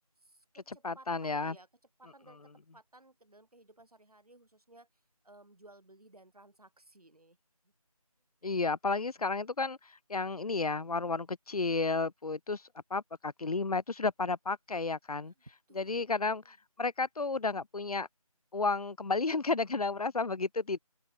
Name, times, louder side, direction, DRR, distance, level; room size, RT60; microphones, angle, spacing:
voice 1, 0.2-1.7 2.0-4.9 5.2-7.4 7.6-7.7 15.3-15.4 15.7-16.1 16.4-16.5, right 2 dB, 75° right, 5.6 m, -58 dB
voice 2, 0.8-1.6 8.4-12.6 12.9-15.3 15.8-18.1 18.5-20.8, left 3 dB, 75° left, 0.7 m, -32 dB
open air
figure-of-eight pair, 170°, 19 cm